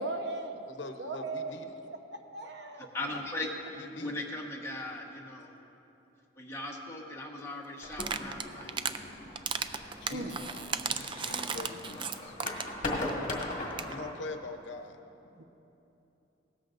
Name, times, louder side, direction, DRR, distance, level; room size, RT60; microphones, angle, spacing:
voice 1, 0.0-0.6 1.0-1.5 2.3-2.9 10.1-10.3 15.4-15.5, right 2 dB, 65° right, 4 dB, 0.9 m, -36 dB
voice 2, 0.5-1.7 3.7-4.2 10.0-10.6 11.2-12.4 13.8-15.0, left 2 dB, 75° left, 6 dB, 0.8 m, -43 dB
voice 3, 2.9-5.5 6.4-8.7, left 2 dB, 15° left, -2 dB, 1.3 m, -38 dB
sound 1, 7.8-14.1, left 2 dB, 45° left, 1.8 m, -39 dB
sound 2, 7.9-9.0 9.4-12.8 13.1-13.2 13.4-13.5 13.7-13.9, right 6 dB, 25° right, 0.4 m, -35 dB
17.5 x 13.5 x 2.6 m, 2.9 s
head